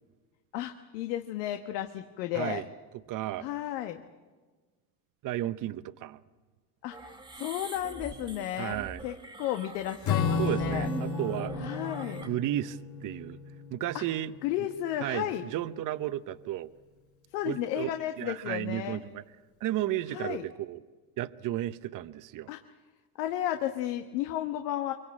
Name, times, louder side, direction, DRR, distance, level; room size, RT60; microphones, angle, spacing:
voice 1, 0.5-2.6 3.4-4.0 6.8-10.9 11.6-12.2 13.9-14.0 14.4-15.4 17.3-19.0 20.1-20.5 22.5-22.6 23.2-24.9, left 12 dB, 85° left, 6 dB, 1.4 m, -33 dB
voice 2, 3.1-3.5 5.2-6.2 8.6-9.0 10.4-11.7 12.2-13.4 13.7-14.3 15.0-16.7 17.4-17.9 18.2-19.2 19.6-20.8 21.2-22.5, right 13 dB, 45° right, 13 dB, 0.9 m, -33 dB
sound 1, 6.9-12.3, right 2 dB, 10° right, 1.3 m, -43 dB
Acoustic guitar / Strum, 10.0-14.8, left 5 dB, 55° left, 4.6 m, -33 dB
25.0 x 24.0 x 8.6 m, 1.3 s
supercardioid pair, 115°, 46 cm